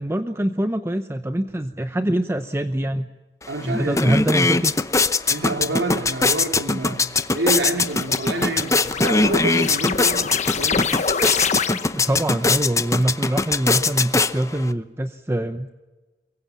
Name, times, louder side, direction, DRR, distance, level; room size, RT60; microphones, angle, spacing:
voice 1, 0.0-3.1 3.6-4.7 12.0-15.7, right 1 dB, 15° right, 0.8 m, -24 dB
sound 1, 3.4-3.5 3.8-14.7, left 3 dB, 20° left, 0.8 m, -21 dB
voice 2, 3.5-4.2 5.3-10.8, right 2 dB, 80° right, 3.2 m, -28 dB
sound 2, 7.2-12.2, left 5 dB, 40° left, 1.0 m, -27 dB
23.5 x 23.0 x 7.3 m
head